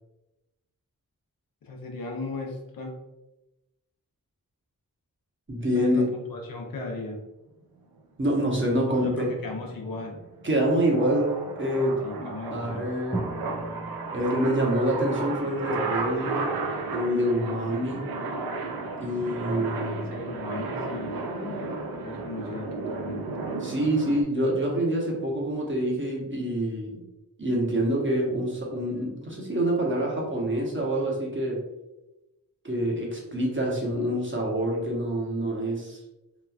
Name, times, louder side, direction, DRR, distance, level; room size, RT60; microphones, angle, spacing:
voice 1, 1.6-2.9 5.7-7.2 8.9-10.2 12.0-12.8 20.0-21.6 22.0-23.2, left 2 dB, 70° left, 0 dB, 0.7 m, -36 dB
voice 2, 5.5-6.0 8.2-9.3 10.4-11.3 11.6-13.2 14.1-16.6 16.9-18.1 18.9-20.1 23.6-27.0 27.4-31.6 32.6-36.0, right 1 dB, 35° right, -2 dB, 0.9 m, -26 dB
sound 1, 8.8-10.6 13.1-14.1, right 2 dB, 10° right, 0.4 m, -38 dB
sound 2, 9.1-24.2, right 3 dB, 85° right, 0.5 m, -34 dB
3.0 x 2.3 x 2.3 m, 0.97 s
cardioid pair, 45°, 36 cm